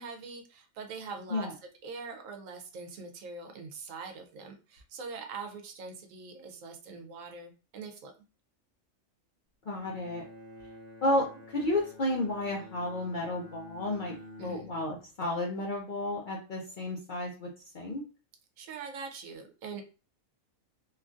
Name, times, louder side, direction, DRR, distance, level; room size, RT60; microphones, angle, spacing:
voice 1, 0.0-1.5 1.8-8.1 14.4-14.6 18.6-19.8, right 4 dB, 80° right, 5 dB, 1.0 m, -43 dB
voice 2, 9.7-10.2 11.0-17.5 17.7-18.0, left 1 dB, 55° left, -1 dB, 0.6 m, -32 dB
Bowed string instrument, 9.7-15.1, left 1 dB, 50° right, 0.9 m, -50 dB
3.0 x 2.3 x 2.5 m, 0.33 s
omnidirectional pair, 1.4 m